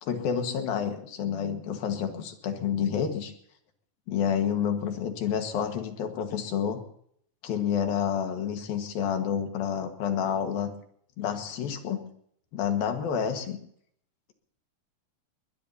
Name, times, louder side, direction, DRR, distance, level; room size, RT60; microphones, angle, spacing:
voice 1, 0.0-3.3 4.1-6.8 7.4-10.7 11.2-12.1 12.5-13.6, left 8 dB, 70° left, 5 dB, 3.2 m, -29 dB
21.5 x 20.0 x 2.8 m, 0.67 s
omnidirectional pair, 4.5 m